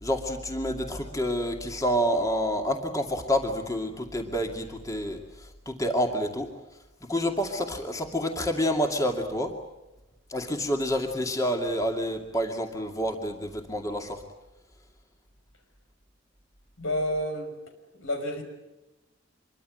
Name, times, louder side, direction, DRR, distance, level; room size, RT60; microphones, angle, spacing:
voice 1, 0.0-6.5 7.0-9.5 10.3-14.2, equal, 15° left, 3 dB, 2.4 m, -28 dB
voice 2, 16.8-17.5 17.9-18.4, equal, 85° left, 6 dB, 5.7 m, -29 dB
26.0 x 23.0 x 7.8 m, 1.0 s
head